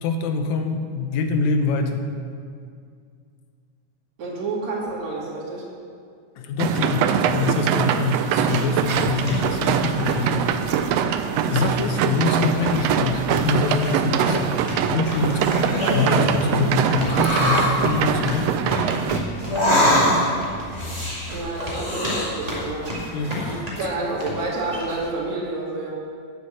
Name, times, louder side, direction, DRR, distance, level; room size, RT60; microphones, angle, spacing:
voice 1, 0.0-2.1 6.4-10.4 11.5-14.6 14.9-18.5 23.1-23.3 23.7-23.8, left 3 dB, 70° left, 6 dB, 2.2 m, -24 dB
voice 2, 4.2-5.7 15.2-15.6 21.3-22.9 23.5-25.9, right 2 dB, 60° right, -4 dB, 3.5 m, -29 dB
sound 1, 6.6-19.2, right 8 dB, 90° right, 1.4 m, -23 dB
sound 2, 8.3-25.1, equal, 15° right, 1.8 m, -34 dB
sound 3, 15.4-16.4 17.0-17.7 19.4-20.4 20.7-22.6 23.0-23.5, equal, 30° left, 4.2 m, -23 dB
9.8 x 8.6 x 7.7 m, 2.2 s
omnidirectional pair, 3.5 m